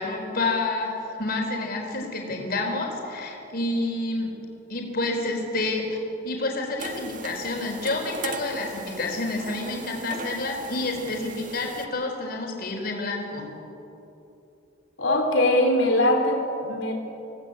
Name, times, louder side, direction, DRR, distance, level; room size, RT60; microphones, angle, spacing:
voice 1, 0.0-4.3 4.7-6.0 6.2-13.5, left 2 dB, 55° left, 1 dB, 4.2 m, -29 dB
sound 1, 6.8-11.9, right 4 dB, 45° right, 1.6 m, -39 dB
voice 2, 15.0-16.9, left 1 dB, 80° left, 2 dB, 3.2 m, -21 dB
27.0 x 17.5 x 8.6 m, 2.9 s
head